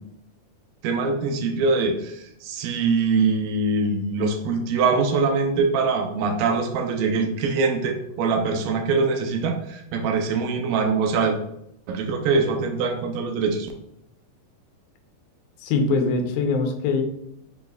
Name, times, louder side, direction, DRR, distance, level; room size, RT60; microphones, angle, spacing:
voice 1, 0.8-11.4 11.9-13.7, right 4 dB, 80° right, 4 dB, 2.3 m, -23 dB
voice 2, 15.6-17.0, left 4 dB, 80° left, 4 dB, 2.5 m, -22 dB
5.9 x 3.9 x 2.3 m, 0.76 s
omnidirectional pair, 4.1 m